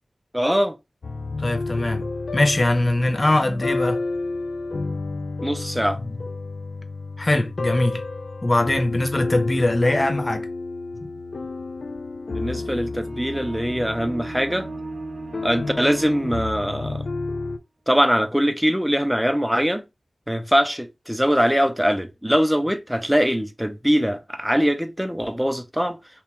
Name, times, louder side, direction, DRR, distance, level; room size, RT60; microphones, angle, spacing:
voice 1, 0.3-0.8 5.4-6.0 12.3-14.7 15.4-17.0 17.9-19.8 20.3-26.0, equal, 5° right, 0.6 m, -22 dB
sound 1, 1.0-17.6, left 3 dB, 75° left, 0.5 m, -31 dB
voice 2, 1.4-2.0 2.3-4.0 6.0-6.2 7.2-8.0 8.4-10.5 13.7-13.8, left 1 dB, 40° left, 0.7 m, -21 dB
sound 2, 13.0-16.9, right 3 dB, 80° right, 0.5 m, -38 dB
3.0 x 2.7 x 3.4 m
cardioid pair, 40°, 0 cm